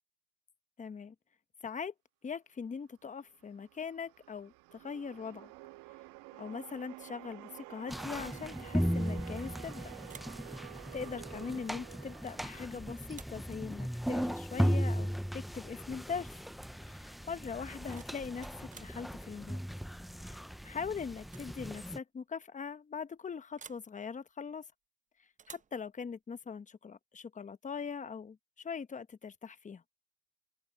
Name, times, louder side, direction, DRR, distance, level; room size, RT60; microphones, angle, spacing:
voice 1, 0.8-1.1 1.6-1.9 2.2-5.5 6.4-9.9 10.9-16.4 16.9-19.6 20.2-24.7 25.5-29.8, left 6 dB, 20° left, 1.1 m, -41 dB
sound 1, 3.2-13.6, right 22 dB, 70° right, 1.2 m, -51 dB
sound 2, 7.9-22.0, equal, ahead, 0.4 m, -37 dB
sound 3, 9.3-9.7 10.0-10.4 12.3-12.6 13.0-13.4 15.3-15.5 15.8-16.2 17.6-19.0 20.5-20.8 21.2-21.5 21.8-21.9 23.6-23.9 25.4-25.8, right 7 dB, 20° right, 0.7 m, -54 dB
open air
supercardioid pair, 100°, 34 cm